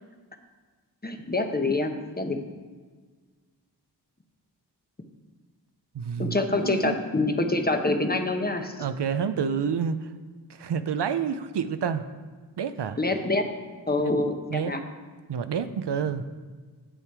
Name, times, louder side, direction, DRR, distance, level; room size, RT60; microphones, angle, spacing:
voice 1, 1.0-2.4 6.2-8.8 13.0-13.5 13.9-14.8, left 2 dB, 25° left, 5 dB, 0.9 m, -26 dB
voice 2, 5.9-7.0 8.8-10.1 10.6-12.0 12.6-13.0 14.5-14.7 15.3-16.2, right 7 dB, 80° right, 11 dB, 0.6 m, -28 dB
9.0 x 8.3 x 4.7 m, 1.5 s
wide cardioid pair, 65°, 41 cm